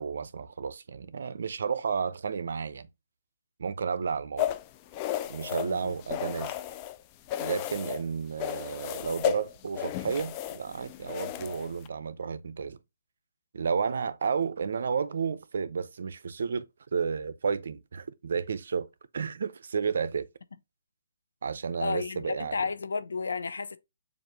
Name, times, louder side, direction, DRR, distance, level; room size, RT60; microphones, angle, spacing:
voice 1, 0.0-2.9 3.6-4.6 5.3-6.5 7.4-12.8 13.5-16.7 16.9-18.9 19.1-20.3 21.4-22.6, right 6 dB, 65° right, 0.6 m, -32 dB
sound 1, 4.4-7.0 7.3-8.0 8.4-11.9, left 13 dB, 20° left, 0.3 m, -34 dB
voice 2, 5.6-6.0 21.8-23.8, left 4 dB, 80° left, 0.7 m, -32 dB
7.1 x 2.5 x 3.0 m
hypercardioid pair, 165°, 0 cm